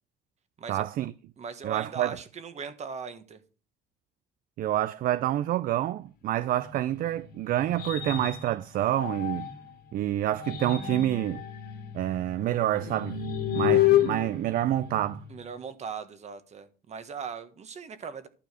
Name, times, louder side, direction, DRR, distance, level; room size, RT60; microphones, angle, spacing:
voice 1, 0.7-1.1 1.6-2.2 4.6-9.5 9.9-11.4 11.9-13.2 13.5-15.2, right 13 dB, 55° right, 0.4 m, -28 dB
voice 2, 1.4-3.4 15.3-18.3, right 6 dB, 40° right, 1.4 m, -39 dB
sound 1, 6.6-9.7 10.2-15.4, left 12 dB, 70° left, 2.5 m, -30 dB
11.5 x 4.8 x 6.1 m
cardioid pair, 110°, 17 cm